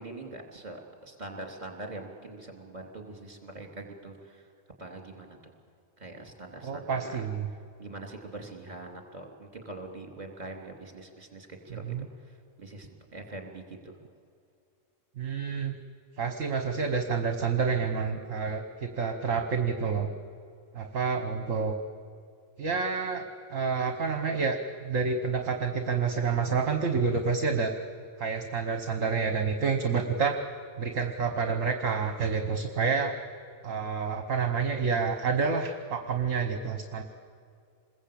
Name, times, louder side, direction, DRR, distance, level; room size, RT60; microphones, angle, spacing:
voice 1, 0.0-4.5 4.8-5.5 6.0-14.0, right 2 dB, 25° right, 3 dB, 3.4 m, -43 dB
voice 2, 6.6-7.4 11.9-12.0 15.2-15.8 16.2-20.1 20.7-21.7 22.6-27.7 28.2-30.4 30.8-33.1 33.6-37.0, right 5 dB, 55° right, 6 dB, 1.5 m, -28 dB
27.5 x 21.0 x 8.6 m, 2.4 s
omnidirectional pair, 1.7 m